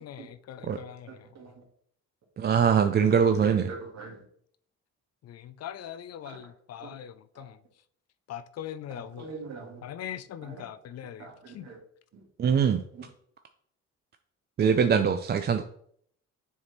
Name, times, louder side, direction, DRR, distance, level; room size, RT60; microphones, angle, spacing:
voice 1, 0.0-1.2 5.2-7.6 8.3-9.3 9.8-11.3 11.5-11.7, left 10 dB, 55° left, 0.5 m, -41 dB
voice 2, 1.1-1.6 3.0-3.2 3.5-4.2 6.3-6.5 6.8-6.9 7.3-7.5 9.0-9.9 10.4-10.6 11.2-11.8 12.1-12.3 12.9-13.0, right 4 dB, 60° right, 1.8 m, -44 dB
voice 3, 2.4-3.7 12.4-12.8 14.6-15.6, right 7 dB, 35° right, 0.4 m, -22 dB
7.0 x 3.4 x 4.1 m
cardioid pair, 90°, 30 cm